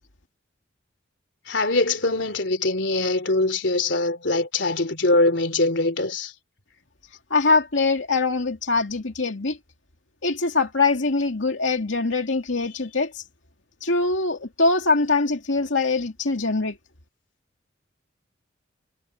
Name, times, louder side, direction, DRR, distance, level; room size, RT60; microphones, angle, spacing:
voice 1, 1.5-6.3, left 2 dB, 70° left, 3.3 m, -22 dB
voice 2, 7.3-9.6 10.2-13.2 13.8-16.8, left 3 dB, 90° left, 2.4 m, -23 dB
head